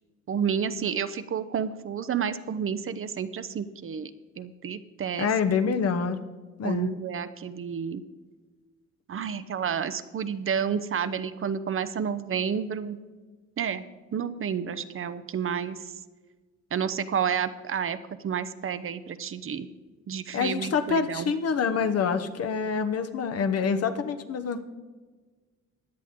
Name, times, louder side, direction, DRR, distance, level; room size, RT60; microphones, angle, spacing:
voice 1, 0.3-4.1 4.4-5.3 6.6-8.0 9.1-13.0 13.6-13.8 14.1-15.8 16.7-18.0 18.2-19.7 20.1-21.3, right 7 dB, 45° right, 12 dB, 0.7 m, -30 dB
voice 2, 5.2-6.2 6.6-6.9 20.3-24.6, left 6 dB, 55° left, 9 dB, 1.0 m, -26 dB
16.5 x 10.0 x 3.7 m, 1.4 s
cardioid pair, 90°, 30 cm